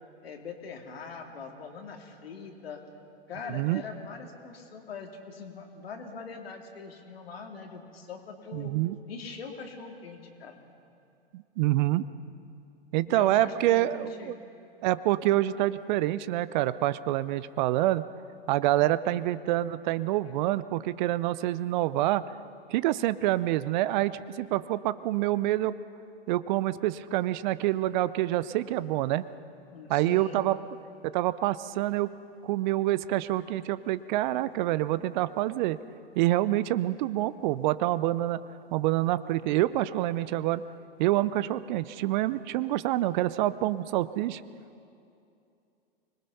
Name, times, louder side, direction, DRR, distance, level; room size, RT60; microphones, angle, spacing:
voice 1, 0.2-2.8 3.3-8.7 9.1-10.6 13.1-14.3 18.8-19.3 29.7-30.4, left 5 dB, 75° left, 3 dB, 2.6 m, -42 dB
voice 2, 3.5-3.8 8.5-9.0 11.3-12.1 12.9-14.3 14.8-18.0 18.5-22.2 22.7-25.7 26.3-29.3 29.9-30.6 31.0-32.1 32.4-35.8 36.2-38.4 38.7-40.6 41.0-44.4, right 15 dB, 50° right, 16 dB, 0.7 m, -27 dB
25.0 x 20.0 x 5.5 m, 2.5 s
hypercardioid pair, 100°, 30 cm